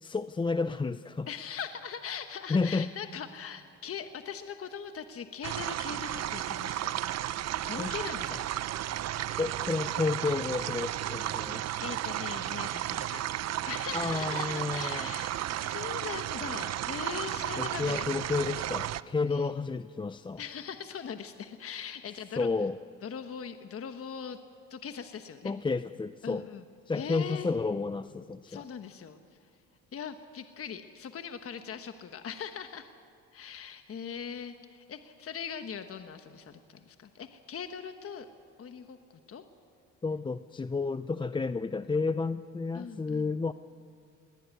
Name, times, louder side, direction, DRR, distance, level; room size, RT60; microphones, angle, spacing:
voice 1, 0.0-1.3 2.5-2.9 7.8-7.9 9.4-11.6 13.9-15.1 17.6-20.4 22.4-22.8 25.4-26.4 26.9-28.6 40.0-43.5, left 4 dB, 15° left, 13 dB, 0.5 m, -31 dB
voice 2, 1.3-7.0 7.7-8.5 11.8-18.1 19.3-19.5 20.4-22.5 23.0-24.4 24.7-25.5 26.2-26.6 26.9-27.5 28.5-29.2 29.9-32.9 33.3-38.3 38.6-39.0 39.3-39.4 42.7-43.3, left 7 dB, 50° left, 8 dB, 1.2 m, -41 dB
sound 1, 5.4-19.0, right 12 dB, 60° right, 0.6 m, -33 dB
19.5 x 19.5 x 9.4 m, 2.3 s
cardioid pair, 90°, 30 cm